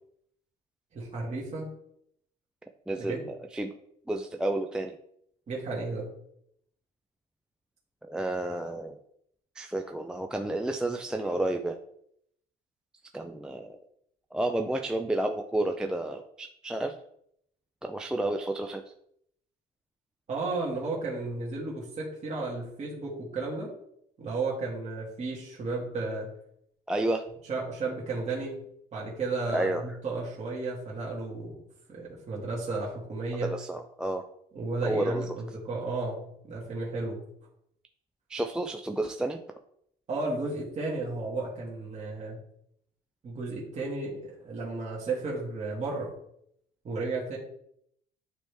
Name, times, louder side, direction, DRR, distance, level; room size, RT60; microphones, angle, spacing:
voice 1, 0.9-1.7 3.0-3.2 5.5-6.1 20.3-23.7 24.2-26.3 27.5-28.6 28.9-31.6 31.9-33.5 34.5-37.2 40.1-42.4 43.2-46.1 46.8-47.4, right 3 dB, 40° right, -5 dB, 1.9 m, -33 dB
voice 2, 2.9-3.7 4.1-5.0 8.1-9.0 9.6-11.8 13.1-13.8 14.3-17.0 17.8-18.8 26.9-27.2 29.5-30.0 33.4-34.2 34.8-35.3 38.3-39.4, right 1 dB, 5° right, 4 dB, 0.4 m, -31 dB
9.0 x 3.1 x 3.4 m, 0.72 s
cardioid pair, 110°, 17 cm